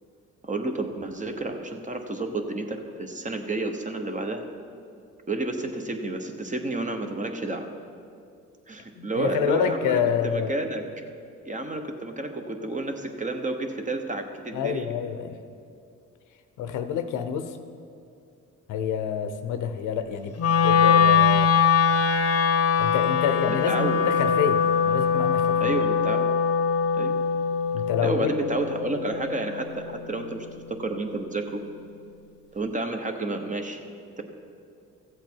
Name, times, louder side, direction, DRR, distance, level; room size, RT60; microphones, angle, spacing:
voice 1, 0.4-4.4 5.3-7.7 8.7-10.8 11.4-14.9 23.5-24.0 25.6-26.3 26.9-27.2 28.0-31.6 32.5-33.8 34.2-34.3, right 2 dB, 25° right, 5 dB, 1.1 m, -30 dB
voice 2, 8.9-10.6 14.5-15.4 16.6-17.6 18.7-21.5 22.8-25.8 27.7-28.3, left 8 dB, 85° left, 9 dB, 0.8 m, -28 dB
Wind instrument woodwind instrument, 20.4-30.6, left 6 dB, 50° left, 0.8 m, -22 dB
14.5 x 7.8 x 4.6 m, 2.4 s
cardioid pair, 90°, 30 cm